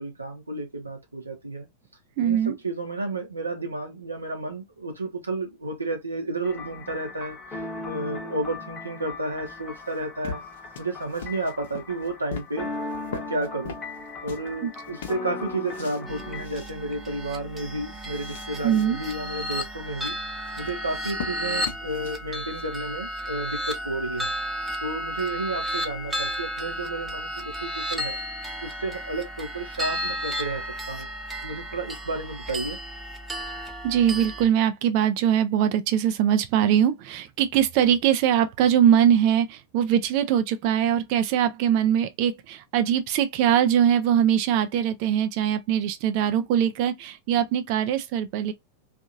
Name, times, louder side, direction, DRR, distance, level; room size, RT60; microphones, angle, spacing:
voice 1, 0.0-1.7 2.2-10.4 10.8-12.7 13.1-13.8 14.2-20.2 20.6-24.3 24.8-31.1 31.4-32.8, right 2 dB, 80° right, 0.7 m, -32 dB
voice 2, 2.2-2.5 14.6-14.7 18.6-19.0 33.8-48.5, right 9 dB, 45° right, 0.4 m, -22 dB
sound 1, 6.4-16.5, left 3 dB, 20° left, 0.9 m, -38 dB
sound 2, 9.4-14.5 14.8-16.0 16.3-16.7 17.1-17.2 17.6-18.9 19.2-19.7 20.4-22.6, left 6 dB, 55° left, 0.6 m, -41 dB
sound 3, 16.1-34.5, equal, 10° right, 0.7 m, -33 dB
2.7 x 2.5 x 2.5 m
figure-of-eight pair, 90°, 0 cm